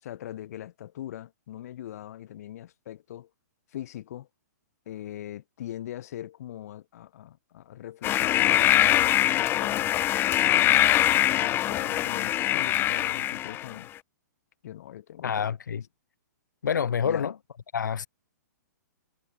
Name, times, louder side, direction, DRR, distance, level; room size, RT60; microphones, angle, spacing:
voice 1, 0.0-3.3 3.7-4.3 4.9-9.9 10.5-13.9 14.6-15.5 17.0-17.3, left 12 dB, 55° left, 7.5 m, -41 dB
sound 1, 8.0-13.8, left 13 dB, 20° left, 1.2 m, -23 dB
voice 2, 15.2-15.8 16.6-17.3 17.7-18.1, left 7 dB, 80° left, 1.5 m, -27 dB
hypercardioid pair, 140°, 10 cm